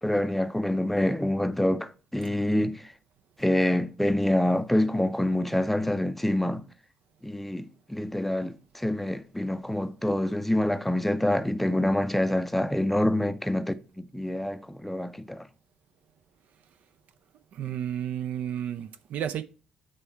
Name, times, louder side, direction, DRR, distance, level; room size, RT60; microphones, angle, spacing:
voice 1, 0.0-2.9 3.4-6.7 7.2-15.5, left 1 dB, 5° left, 0.6 m, -26 dB
voice 2, 17.5-19.4, right 10 dB, 50° right, 0.5 m, -32 dB
8.8 x 3.4 x 4.4 m
figure-of-eight pair, 45°, 3 cm